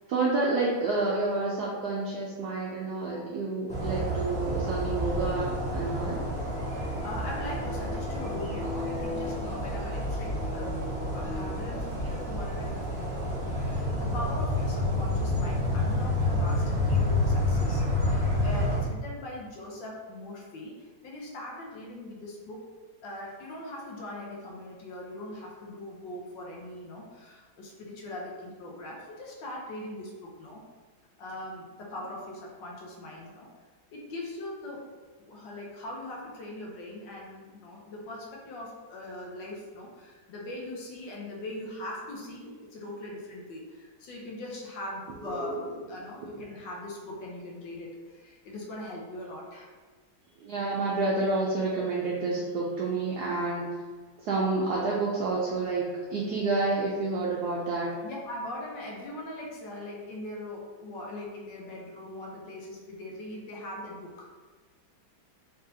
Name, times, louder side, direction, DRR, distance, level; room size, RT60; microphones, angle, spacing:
voice 1, 0.1-6.2 45.3-45.7 50.4-53.7 54.2-57.9, right 3 dB, 75° right, -4 dB, 0.9 m, -29 dB
sound 1, 3.7-18.8, left 1 dB, 5° left, 0.7 m, -29 dB
voice 2, 6.6-22.6 23.0-30.6 31.2-33.5 33.9-34.8 35.2-45.6 45.9-49.7 58.0-64.4, left 1 dB, 70° left, -2 dB, 1.4 m, -41 dB
3.9 x 3.7 x 2.7 m, 1.4 s
omnidirectional pair, 2.2 m